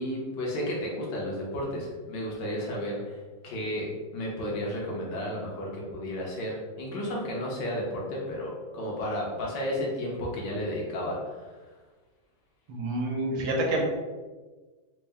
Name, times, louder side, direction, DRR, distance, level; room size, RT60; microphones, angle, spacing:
voice 1, 0.0-11.6, left 1 dB, 65° left, -3 dB, 1.5 m, -33 dB
voice 2, 12.7-13.8, right 1 dB, 90° right, 0 dB, 1.6 m, -28 dB
4.2 x 2.1 x 3.4 m, 1.3 s
omnidirectional pair, 2.2 m